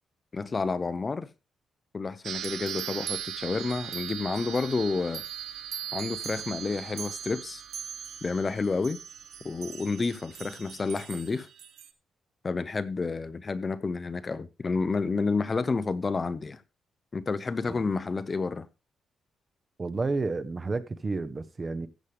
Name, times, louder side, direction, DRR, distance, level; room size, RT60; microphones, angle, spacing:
voice 1, 0.3-1.3 1.9-5.2 5.9-7.6 8.2-9.0 9.4-11.5 12.4-16.6 17.1-18.7, left 4 dB, 25° left, 0.6 m, -30 dB
sound 1, 2.2-11.9, right 9 dB, 75° right, 1.4 m, -39 dB
voice 2, 19.8-21.9, right 3 dB, 25° right, 0.9 m, -30 dB
14.0 x 8.4 x 3.3 m
cardioid pair, 140°, 0 cm